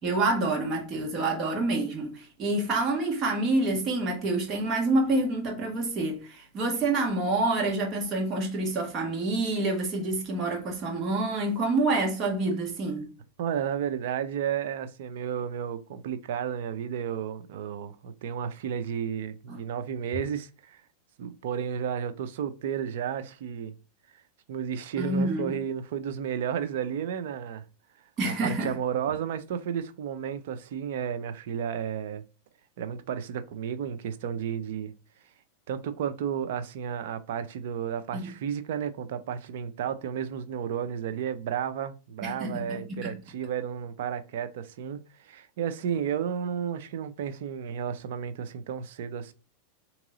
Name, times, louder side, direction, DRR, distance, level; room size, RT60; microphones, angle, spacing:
voice 1, 0.0-13.1 19.5-19.6 25.0-25.5 28.2-28.7 38.1-38.3 42.2-43.1, right 2 dB, 35° right, 1.5 m, -27 dB
voice 2, 13.4-20.8 21.2-23.7 24.5-27.6 28.2-32.2 32.8-34.9 35.7-49.3, right 8 dB, 70° right, 0.5 m, -32 dB
3.6 x 3.0 x 3.8 m
hypercardioid pair, 115°, 0 cm